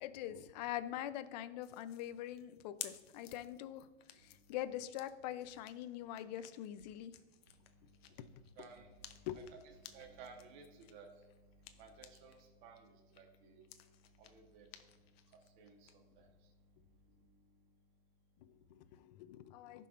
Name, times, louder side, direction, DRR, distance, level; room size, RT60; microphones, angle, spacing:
voice 1, 0.0-3.9 4.1-7.1 8.2-8.3 9.3-9.4 18.4-19.9, left 12 dB, 45° left, 13 dB, 0.5 m, -44 dB
sound 1, 1.6-12.4 12.8-15.9, left 11 dB, 70° left, 0.8 m, -56 dB
voice 2, 8.6-11.1 11.8-13.7 14.2-14.7 15.6-16.3, right 5 dB, 50° right, 2 dB, 1.2 m, -57 dB
15.5 x 5.7 x 2.5 m, 1.2 s
supercardioid pair, 155°, 31 cm